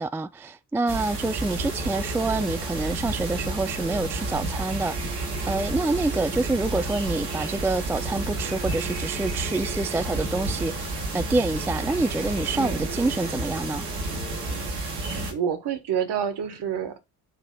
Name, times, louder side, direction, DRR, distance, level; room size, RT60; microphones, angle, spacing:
voice 1, 0.0-13.9, right 3 dB, 5° right, 0.3 m, -27 dB
sound 1, 0.9-15.3, right 2 dB, 80° right, 2.1 m, -30 dB
voice 2, 12.5-12.9 15.3-17.2, right 8 dB, 55° right, 1.7 m, -28 dB
9.2 x 3.4 x 5.8 m
figure-of-eight pair, 45°, 47 cm